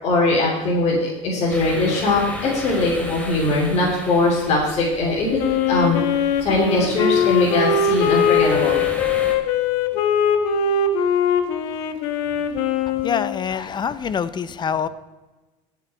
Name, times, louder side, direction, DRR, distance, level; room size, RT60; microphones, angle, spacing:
voice 1, 0.0-5.4 5.7-6.0 6.4-8.8, left 2 dB, 45° left, -4 dB, 3.3 m, -20 dB
sound 1, 1.5-9.4, left 1 dB, 10° left, 2.5 m, -35 dB
Wind instrument woodwind instrument, 5.4-13.5, left 6 dB, 75° left, 1.1 m, -21 dB
voice 2, 13.0-14.9, left 7 dB, 30° left, 16 dB, 0.6 m, -25 dB
19.0 x 6.9 x 4.5 m, 1.2 s
supercardioid pair, 95°, 15 cm